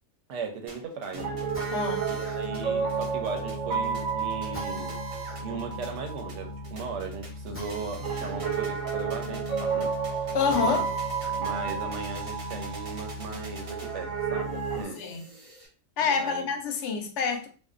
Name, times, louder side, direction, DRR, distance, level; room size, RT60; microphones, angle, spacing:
voice 1, 0.3-1.4 2.1-4.9 5.4-9.9 10.6-10.8 11.4-15.0 16.0-16.5, right 5 dB, 70° right, 0.9 m, -37 dB
sound 1, 0.7-15.7, right 2 dB, 55° right, 0.4 m, -49 dB
Piano, 1.1-14.8, right 5 dB, 90° right, 1.0 m, -31 dB
Drill, 1.5-11.4 11.8-13.4, right 1 dB, 15° left, 0.5 m, -47 dB
voice 2, 1.7-2.1 10.3-10.9 14.9-15.2 16.0-17.5, left 5 dB, 70° left, 0.8 m, -27 dB
2.5 x 2.2 x 2.4 m
omnidirectional pair, 1.4 m